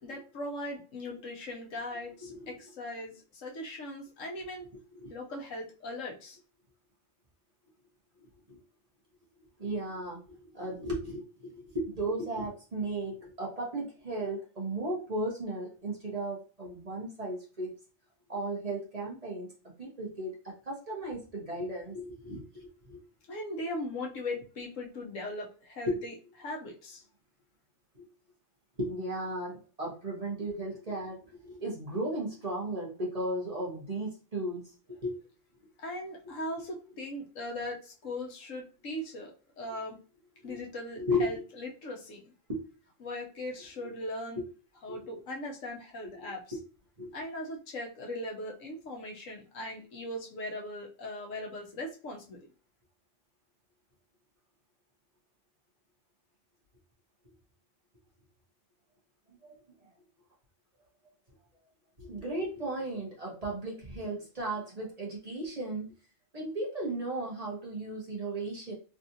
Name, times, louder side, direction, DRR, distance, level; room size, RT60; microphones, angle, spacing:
voice 1, 0.0-4.7 5.1-6.4 23.3-26.1 26.4-27.0 35.8-40.0 40.4-42.3 43.0-44.4 44.8-46.6 47.1-52.5, left 1 dB, 80° left, 0 dB, 1.3 m, -39 dB
voice 2, 2.2-2.5 5.0-5.1 8.5-8.6 9.6-17.7 18.3-19.5 19.8-23.0 27.9-28.0 28.8-35.1 40.4-40.6 40.9-41.4 42.5-42.6 44.9-45.0 46.1-46.3 47.0-47.1 62.0-65.9 66.3-68.7, right 1 dB, 30° right, -4 dB, 1.0 m, -35 dB
3.5 x 2.5 x 2.7 m, 0.36 s
omnidirectional pair, 1.3 m